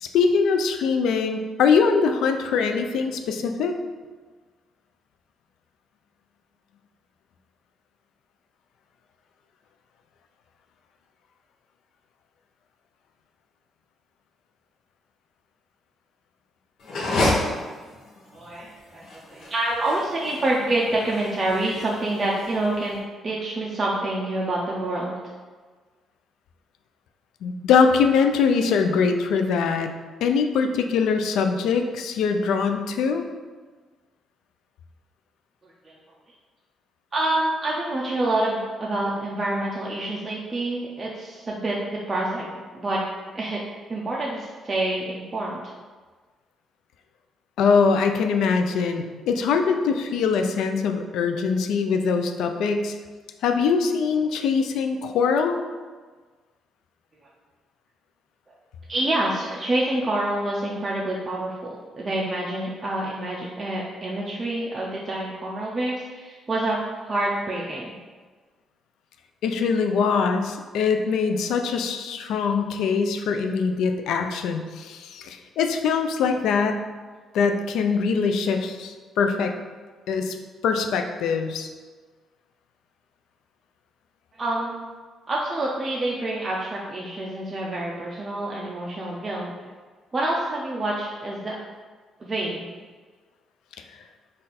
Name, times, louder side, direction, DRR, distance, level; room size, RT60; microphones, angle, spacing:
voice 1, 0.0-3.8 27.4-29.9 30.2-33.2 47.6-52.9 53.4-55.6 69.4-76.8 77.3-79.5 80.1-80.4 80.6-81.7, left 5 dB, 80° left, 6 dB, 0.3 m, -22 dB
sound 1, 16.8-22.9, left 1 dB, 65° left, 0.8 m, -29 dB
voice 2, 18.3-23.0 23.2-25.2 35.6-35.9 37.1-43.0 43.3-43.6 43.9-45.7 58.9-61.6 62.0-66.8 67.1-68.0 84.3-84.9 85.3-89.5 90.1-91.6 92.2-92.6, right 2 dB, 30° right, -4 dB, 0.5 m, -27 dB
3.9 x 2.5 x 4.1 m, 1.4 s
cardioid pair, 90°, 0 cm